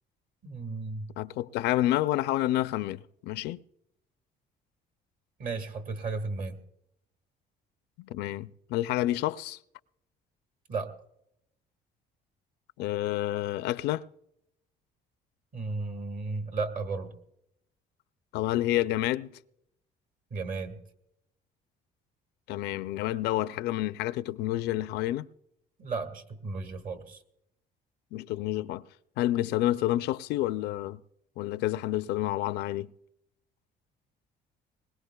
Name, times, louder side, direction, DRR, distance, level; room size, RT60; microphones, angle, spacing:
voice 1, 0.4-1.1 5.4-6.6 10.7-10.9 15.5-17.2 20.3-20.8 25.8-27.2, right 3 dB, 50° right, 1.6 m, -34 dB
voice 2, 1.2-3.6 8.0-9.6 12.8-14.1 18.3-19.3 22.5-25.3 28.1-28.8 29.2-31.0 31.4-32.9, left 14 dB, 80° left, 0.4 m, -29 dB
21.0 x 20.0 x 2.3 m
cardioid pair, 110°, 17 cm